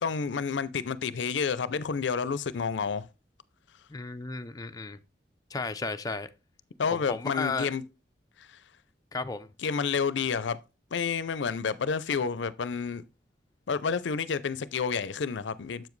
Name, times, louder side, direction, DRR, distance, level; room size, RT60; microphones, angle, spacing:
voice 1, 0.0-3.1 6.8-7.8 8.4-8.6 9.6-10.6 10.9-13.0 13.7-15.9, left 5 dB, 80° left, 0.5 m, -30 dB
voice 2, 3.9-5.0 5.5-6.3 6.9-7.7 9.1-9.5, left 3 dB, 20° left, 0.5 m, -34 dB
7.6 x 7.1 x 3.1 m
head